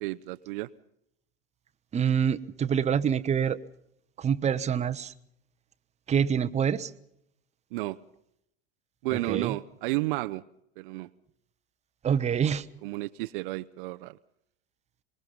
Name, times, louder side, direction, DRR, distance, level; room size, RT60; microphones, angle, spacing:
voice 1, 0.0-0.7 7.7-8.0 9.0-10.4 10.8-11.1 12.8-14.2, right 20 dB, 60° right, 11 dB, 0.8 m, -32 dB
voice 2, 1.9-3.6 4.2-5.1 6.1-6.9 9.1-9.6 12.0-12.6, right 8 dB, 20° right, 11 dB, 1.0 m, -26 dB
24.5 x 21.0 x 5.4 m, 0.75 s
hypercardioid pair, 90°, 29 cm